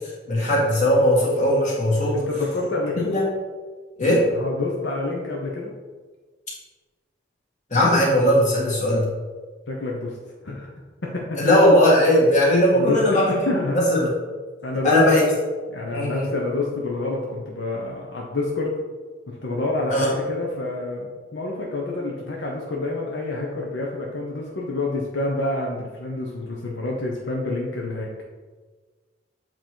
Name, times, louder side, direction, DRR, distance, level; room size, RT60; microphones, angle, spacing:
voice 1, 0.3-2.2 3.0-3.3 4.0-4.2 7.7-9.1 11.4-13.4 13.7-14.1 14.8-15.2 15.9-16.3 19.9-20.1, left 1 dB, 40° left, -5 dB, 1.9 m, -18 dB
voice 2, 2.1-3.2 4.0-5.7 9.7-10.2 10.4-10.7 11.0-11.5 12.7-13.8 14.6-15.0 15.7-18.7 19.3-28.1, left 2 dB, 75° left, -2 dB, 0.8 m, -28 dB
7.7 x 3.0 x 4.5 m, 1.4 s
head